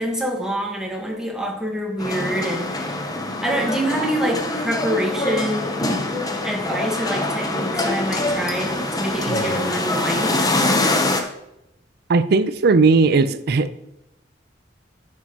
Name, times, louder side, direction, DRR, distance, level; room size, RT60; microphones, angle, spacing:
voice 1, 0.0-6.2 6.4-10.6, right 1 dB, 5° right, -1 dB, 1.4 m, -26 dB
sound 1, 2.0-11.2, left 2 dB, 20° left, 0.8 m, -24 dB
voice 2, 12.1-13.7, right 4 dB, 60° right, 13 dB, 0.5 m, -17 dB
10.5 x 6.3 x 2.9 m, 0.84 s
head